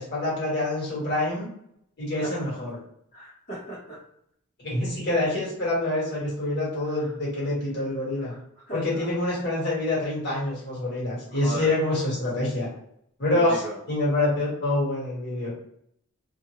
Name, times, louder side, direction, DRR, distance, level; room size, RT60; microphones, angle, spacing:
voice 1, 0.0-1.5 2.0-2.8 4.6-8.3 8.7-12.7 13.2-15.5, left 2 dB, 50° left, -6 dB, 1.5 m, -26 dB
voice 2, 3.1-4.0 8.7-9.0 11.4-11.7 13.3-13.7, right 1 dB, 35° left, -11 dB, 1.1 m, -36 dB
2.5 x 2.4 x 3.0 m, 0.71 s
head